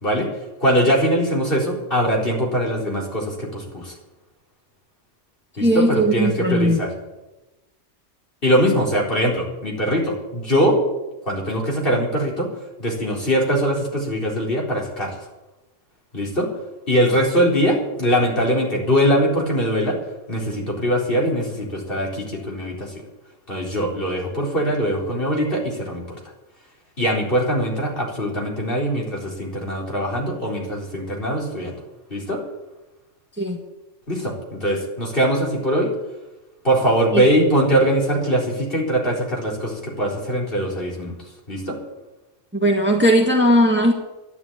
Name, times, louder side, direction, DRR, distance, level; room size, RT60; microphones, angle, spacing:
voice 1, 0.6-3.9 5.6-6.9 8.4-10.8 11.3-12.5 12.8-15.1 16.1-16.5 16.9-20.0 20.3-22.9 23.5-26.0 27.0-31.7 32.1-32.4 34.1-35.9 36.6-41.2 41.5-41.8, equal, 45° left, -2 dB, 4.4 m, -21 dB
voice 2, 5.6-6.8 33.4-33.6 37.1-37.2 42.6-43.9, equal, 10° right, 1 dB, 1.8 m, -18 dB
12.0 x 11.5 x 8.7 m, 1.0 s
omnidirectional pair, 1.3 m